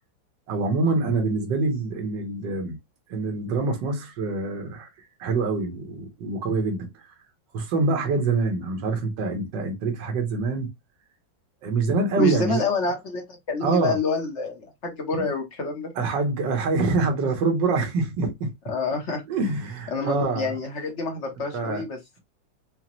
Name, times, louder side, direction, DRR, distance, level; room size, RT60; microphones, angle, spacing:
voice 1, 0.5-2.8 3.1-4.9 5.2-6.9 7.5-10.7 11.6-12.6 13.6-14.0 15.1-15.3 16.0-18.5 19.3-20.6 21.5-21.8, right 3 dB, 70° right, 1.7 m, -25 dB
voice 2, 12.2-15.9 18.7-19.2 19.9-22.2, left 3 dB, 50° left, 0.9 m, -28 dB
5.5 x 2.1 x 3.0 m
omnidirectional pair, 2.1 m